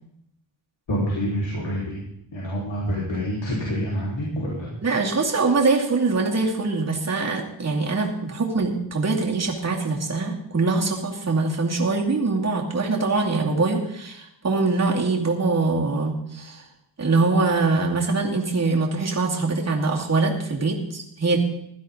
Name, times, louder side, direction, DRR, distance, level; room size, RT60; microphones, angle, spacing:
voice 1, 0.9-2.0 2.3-4.8, equal, 65° left, -4 dB, 4.2 m, -27 dB
voice 2, 4.8-16.6 17.0-21.4, right 3 dB, 35° right, -1 dB, 2.4 m, -23 dB
16.0 x 12.5 x 3.9 m, 0.76 s
wide cardioid pair, 115°, 48 cm